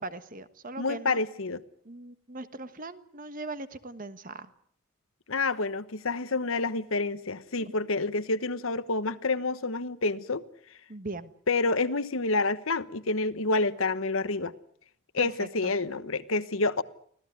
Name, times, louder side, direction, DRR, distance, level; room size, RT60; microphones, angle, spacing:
voice 1, 0.0-1.2 1.8-4.5 7.6-7.9 10.9-11.3 15.2-15.7, right 2 dB, 40° right, 12 dB, 1.3 m, -40 dB
voice 2, 0.8-1.6 5.3-10.4 11.5-14.5 15.1-16.8, left 3 dB, 65° left, 14 dB, 1.2 m, -28 dB
25.0 x 17.0 x 9.4 m, 0.64 s
head